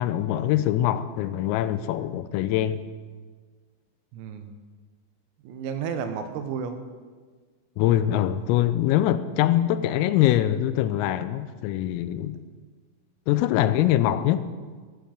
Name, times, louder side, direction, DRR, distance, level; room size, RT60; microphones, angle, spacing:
voice 1, 0.0-2.8 7.8-12.4 13.3-14.4, left 12 dB, 85° left, 3.3 m, -23 dB
voice 2, 4.1-4.5 5.4-6.8, right 6 dB, 85° right, 3.8 m, -32 dB
15.0 x 12.0 x 5.2 m
omnidirectional pair, 5.9 m